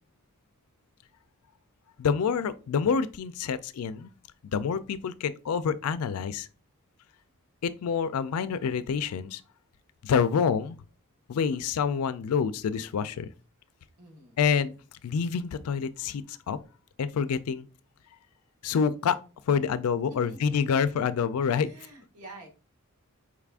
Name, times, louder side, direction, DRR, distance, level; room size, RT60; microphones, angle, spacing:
voice 1, 2.0-4.1 4.5-6.5 7.6-9.4 10.0-10.8 11.3-13.3 14.4-14.7 15.0-16.6 17.0-17.7 18.6-19.2 19.5-21.7, left 6 dB, 70° left, 0.4 m, -27 dB
voice 2, 11.4-11.7 14.0-14.4 20.1-20.7 21.6-22.5, right 1 dB, 90° right, 1.3 m, -48 dB
4.8 x 2.4 x 3.4 m
head